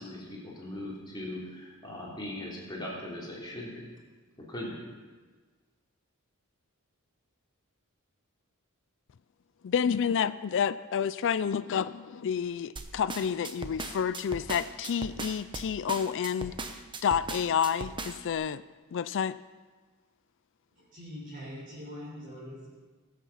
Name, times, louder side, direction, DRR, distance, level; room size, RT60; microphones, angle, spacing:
voice 1, 0.0-3.9 4.4-4.8, left 1 dB, 20° left, -4 dB, 3.0 m, -39 dB
voice 2, 9.6-16.5 17.0-18.6 18.9-19.4, left 7 dB, 55° left, 15 dB, 0.4 m, -29 dB
sound 1, 12.8-18.3, right 3 dB, 20° right, 0.9 m, -38 dB
voice 3, 20.7-22.8, equal, 40° right, -7 dB, 4.1 m, -43 dB
19.5 x 8.3 x 5.7 m, 1.3 s
head